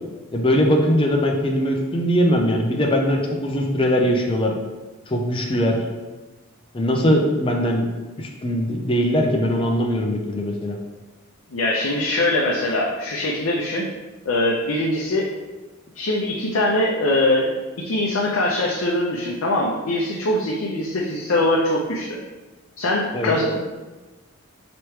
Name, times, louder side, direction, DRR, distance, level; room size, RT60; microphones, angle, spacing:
voice 1, 0.3-4.5 5.1-5.8 6.7-7.9 8.2-10.8 23.1-23.3, equal, 25° left, 1 dB, 0.5 m, -21 dB
voice 2, 11.5-13.8 14.3-15.3 15.9-17.5 17.8-22.2 22.8-23.8, left 1 dB, 70° left, -3 dB, 0.5 m, -22 dB
4.6 x 3.0 x 3.1 m, 1.2 s
head